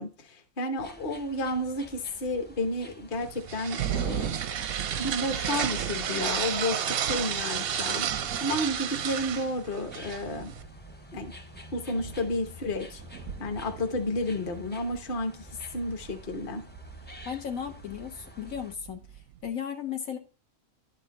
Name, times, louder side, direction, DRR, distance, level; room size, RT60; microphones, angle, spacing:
voice 1, 0.0-4.4 5.0-8.1 8.4-10.5 11.1-11.3 11.7-13.0 13.4-15.5 15.7-16.7, left 1 dB, 40° left, 1.2 m, -31 dB
sound 1, 0.8-18.7, left 1 dB, 10° left, 0.5 m, -49 dB
sound 2, 3.1-10.6, right 8 dB, 60° right, 0.6 m, -32 dB
sound 3, 3.8-19.5, right 11 dB, 85° right, 1.0 m, -40 dB
voice 2, 17.2-19.0 19.4-20.2, left 8 dB, 80° left, 1.6 m, -35 dB
11.5 x 4.3 x 4.2 m
omnidirectional pair, 1.4 m